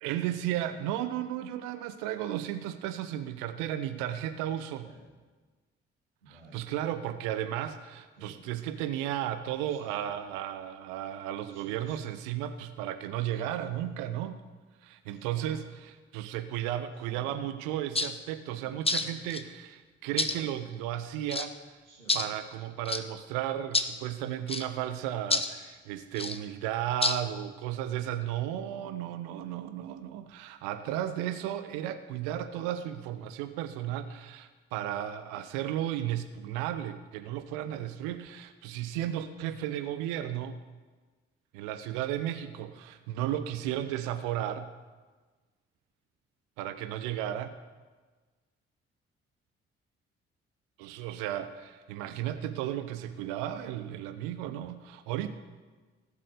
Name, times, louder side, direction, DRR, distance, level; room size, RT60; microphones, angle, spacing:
voice 1, 0.0-4.9 6.3-14.4 14.8-21.5 22.1-40.6 41.5-44.7 46.6-47.6 50.8-55.3, right 11 dB, 70° right, 11 dB, 0.8 m, -34 dB
Speech synthesizer, 4.8-5.1 6.2-6.7 8.1-8.5 9.6-10.2 11.5-12.0 13.3-13.8 15.1-15.6 16.9-17.3 18.5-18.9 20.2-20.6 21.8-22.3, right 3 dB, 85° right, 2.0 m, -54 dB
sound 1, 18.0-18.1 18.9-19.4 20.2-20.4 21.3-21.5 22.1-22.3 22.9-23.0 23.7-23.9 24.5-24.6 25.3-25.5 26.2-26.4 27.0-27.2, left 3 dB, 15° left, 1.1 m, -28 dB
17.5 x 7.7 x 6.7 m, 1.4 s
figure-of-eight pair, 40°, 33 cm